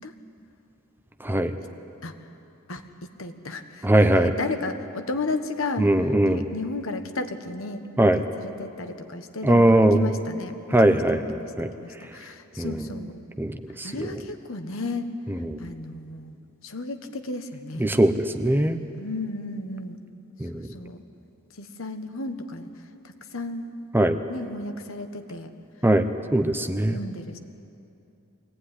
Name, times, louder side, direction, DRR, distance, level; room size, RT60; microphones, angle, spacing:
voice 1, 1.2-1.5 3.8-4.3 5.8-6.4 8.0-8.2 9.4-10.0 10.7-11.7 12.6-12.8 13.4-14.1 15.3-15.7 17.8-18.8 20.4-20.6 23.9-24.2 25.8-27.0, right 1 dB, 10° right, 8 dB, 0.8 m, -21 dB
voice 2, 2.7-5.9 6.2-11.5 11.8-13.2 13.8-15.1 15.6-16.4 16.6-17.9 18.5-20.0 20.5-21.0 21.5-22.7 23.0-23.7 24.3-25.5 26.3-26.5 26.9-27.4, left 2 dB, 70° left, 8 dB, 1.4 m, -34 dB
23.5 x 17.5 x 9.9 m, 2.8 s
head